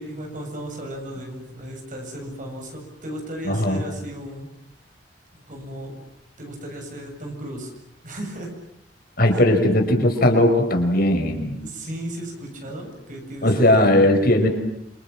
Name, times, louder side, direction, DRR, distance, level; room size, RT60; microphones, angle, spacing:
voice 1, 0.0-4.5 5.5-6.0 6.4-7.7 8.0-8.5 11.6-14.1, right 1 dB, 45° right, 2 dB, 7.9 m, -35 dB
voice 2, 3.4-3.8 9.2-11.6 13.4-14.5, left 1 dB, 55° left, 5 dB, 5.3 m, -18 dB
28.0 x 26.5 x 7.5 m, 0.75 s
head